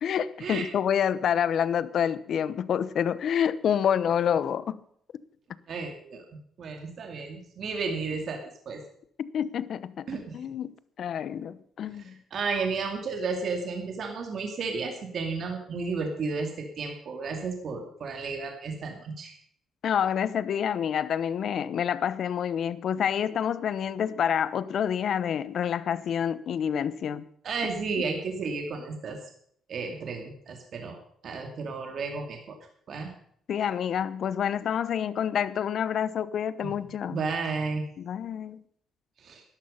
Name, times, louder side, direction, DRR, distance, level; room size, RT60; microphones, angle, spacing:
voice 1, 0.0-4.8 9.2-10.1 10.3-12.2 19.8-27.3 33.5-37.2 38.0-38.6, left 8 dB, 65° left, 16 dB, 0.8 m, -28 dB
voice 2, 5.7-6.2 6.6-8.8 10.1-10.3 11.9-12.0 12.3-19.4 27.4-29.2 29.7-31.0 31.2-32.6 32.9-33.1 36.6-36.7 37.1-37.8 39.2-39.4, right 4 dB, 60° right, 3 dB, 2.3 m, -33 dB
13.0 x 11.5 x 5.6 m, 0.66 s
cardioid pair, 90°, 0 cm